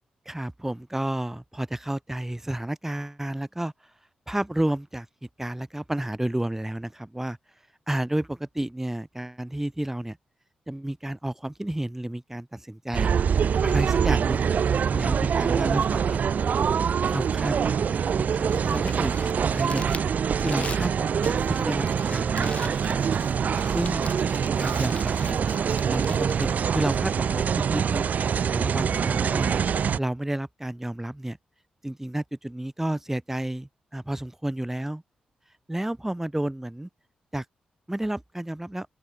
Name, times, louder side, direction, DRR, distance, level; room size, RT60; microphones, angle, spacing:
voice 1, 0.3-3.7 4.3-5.1 5.4-7.4 7.9-10.2 10.7-13.1 13.6-14.5 14.9-16.2 17.1-19.8 20.4-23.3 23.7-24.2 24.6-25.4 25.9-28.1 28.5-29.6 30.0-31.4 31.8-35.0 35.7-36.9 37.3-37.4 37.9-38.9, right 1 dB, 10° right, 4.3 m, -31 dB
sound 1, 12.9-30.0, right 7 dB, 65° right, 1.6 m, -24 dB
Crumpling crinkling, 18.3-27.5, left 4 dB, 45° left, 1.9 m, -43 dB
open air
supercardioid pair, 50°, 3 cm